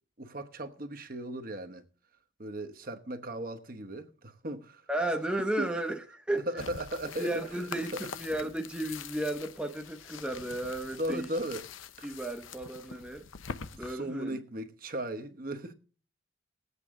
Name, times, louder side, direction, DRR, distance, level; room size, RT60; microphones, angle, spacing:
voice 1, 0.2-1.8 2.4-4.8 5.6-5.7 6.5-7.3 11.0-11.6 12.0-12.1 12.9-13.0 13.8-15.7, right 1 dB, 45° right, 1.0 m, -37 dB
voice 2, 4.9-6.6 7.2-11.3 12.0-13.2 13.8-14.4, right 1 dB, 5° right, 0.7 m, -34 dB
sound 1, 6.6-13.9, left 6 dB, 90° left, 0.8 m, -45 dB
19.5 x 8.3 x 3.7 m
head